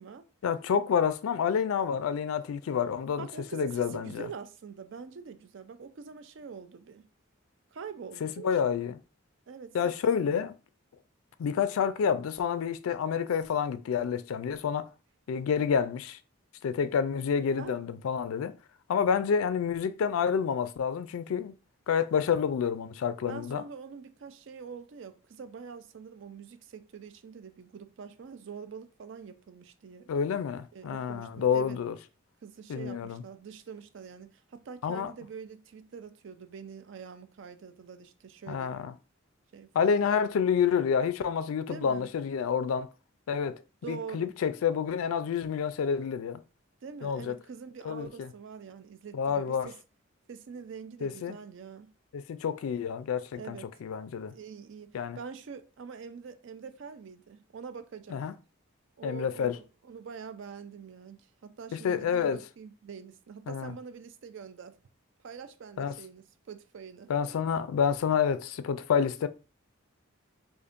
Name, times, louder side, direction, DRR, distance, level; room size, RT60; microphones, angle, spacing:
voice 1, 0.4-3.3 3.5-4.3 8.2-9.0 9.7-10.5 11.4-14.9 15.3-16.2 16.6-18.5 18.9-21.6 21.9-23.6 30.1-32.0 32.7-33.2 34.8-35.1 38.5-38.9 39.7-42.9 43.3-43.6 43.9-46.4 47.0-47.4 47.8-48.3 49.1-49.7 51.0-51.4 52.1-54.3 54.9-55.2 58.1-58.3 59.0-59.6 61.7-62.4 63.5-63.7 65.8-65.9 67.1-69.3, left 7 dB, 80° left, 0.3 m, -28 dB
voice 2, 3.2-7.0 7.7-8.7 9.5-10.4 17.6-17.8 23.3-30.1 30.7-31.8 32.4-38.8 39.5-40.2 41.7-42.1 43.8-44.3 46.8-49.7 50.3-51.9 53.3-53.7 54.3-58.2 59.0-64.7 65.2-67.3, right 6 dB, 60° right, 0.4 m, -45 dB
5.0 x 2.5 x 2.5 m
head